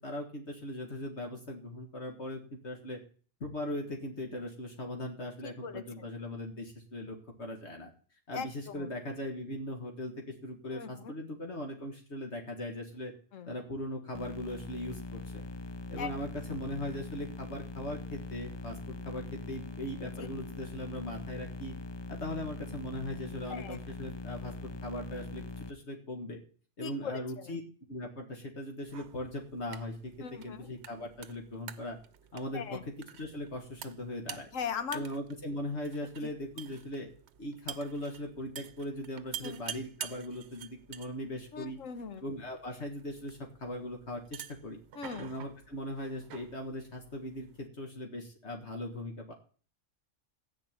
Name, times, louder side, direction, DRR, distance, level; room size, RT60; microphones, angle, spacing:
voice 1, 0.0-3.0 3.4-7.9 8.3-13.1 13.5-15.4 15.9-21.7 22.1-26.4 26.8-27.6 27.9-32.0 32.3-32.6 33.1-34.5 34.9-37.1 37.4-41.8 42.2-44.8 45.2-49.3, left 1 dB, 60° left, 1 dB, 2.2 m, -39 dB
voice 2, 5.4-6.1 8.3-8.9 10.7-11.1 13.3-13.5 16.0-16.1 20.0-20.3 23.5-23.9 26.8-27.6 30.2-30.7 32.5-32.8 34.5-35.0 36.2-36.3 39.4-39.6 41.5-42.2 44.9-45.3, left 6 dB, 85° left, 11 dB, 1.4 m, -40 dB
sound 1, 14.1-25.7, left 3 dB, 35° left, 0.4 m, -42 dB
sound 2, 28.8-47.7, right 9 dB, 65° right, 0.9 m, -49 dB
14.5 x 5.5 x 9.0 m, 0.42 s
omnidirectional pair, 1.3 m